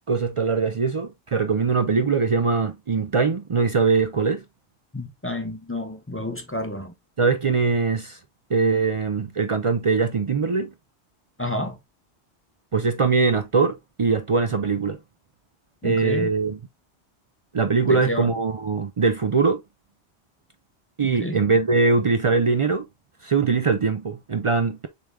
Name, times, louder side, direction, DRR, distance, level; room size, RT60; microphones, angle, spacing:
voice 1, 0.0-4.4 7.2-8.2 8.5-10.7 12.7-15.0 15.8-16.6 17.5-19.6 21.0-22.8 23.2-24.9, right 4 dB, 50° right, 0.4 m, -22 dB
voice 2, 4.9-6.9 11.4-11.8 15.8-16.3 17.8-18.3 21.0-21.4, left 1 dB, 15° left, 0.5 m, -30 dB
6.8 x 3.5 x 2.2 m
omnidirectional pair, 1.1 m